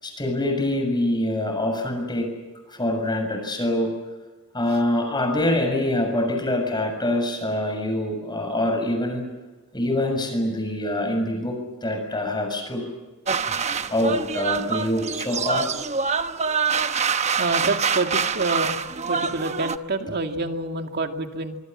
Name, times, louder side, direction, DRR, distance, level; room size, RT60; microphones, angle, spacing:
voice 1, 0.0-2.4 2.7-4.0 4.5-9.2 9.7-12.9 13.9-15.7, left 1 dB, 20° left, 4 dB, 6.9 m, -25 dB
sound 1, 13.3-19.8, right 5 dB, 30° right, 0.9 m, -25 dB
voice 2, 17.4-18.8 19.1-21.6, right 3 dB, 45° right, 5 dB, 2.3 m, -27 dB
25.5 x 24.0 x 7.6 m, 1.2 s
head